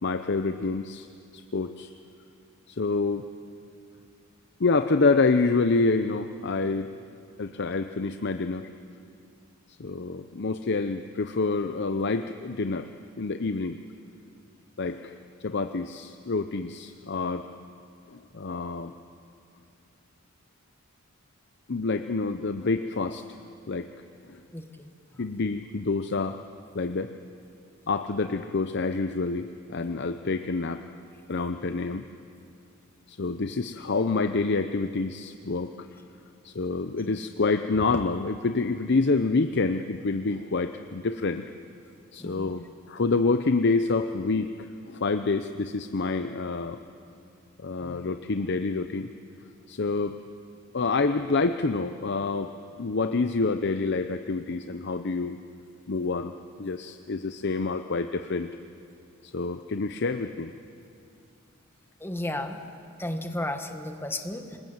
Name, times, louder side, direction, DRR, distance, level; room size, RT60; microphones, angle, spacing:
voice 1, 0.0-1.1 1.5-1.9 2.7-3.3 4.6-6.9 7.4-8.7 9.8-12.9 13.2-13.8 14.8-17.5 18.1-18.9 21.7-23.2 23.7-23.9 24.3-24.4 25.2-26.4 26.7-27.1 27.9-30.8 31.3-32.1 33.1-35.9 36.4-41.4 42.1-44.5 44.9-46.8 47.6-49.1 49.7-50.2 50.7-52.5 52.8-55.4 55.9-58.5 59.2-60.5, left 3 dB, 55° left, 8 dB, 0.7 m, -27 dB
voice 2, 24.5-24.9 42.2-42.5 62.0-62.6 63.0-64.6, left 1 dB, 10° left, 6 dB, 1.4 m, -33 dB
27.0 x 20.5 x 7.9 m, 2.6 s
head